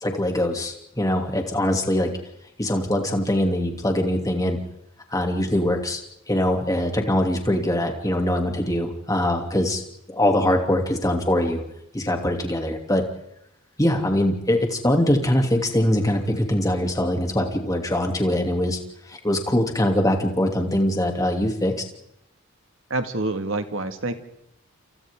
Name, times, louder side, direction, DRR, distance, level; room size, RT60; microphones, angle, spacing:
voice 1, 0.0-2.1 2.6-4.6 5.1-6.0 6.3-9.8 10.1-11.6 11.9-13.0 13.8-18.8 19.1-21.7, left 1 dB, 15° left, 3 dB, 2.8 m, -22 dB
voice 2, 22.9-24.1, right 2 dB, 65° right, 7 dB, 2.0 m, -27 dB
29.0 x 28.5 x 3.8 m, 0.80 s
head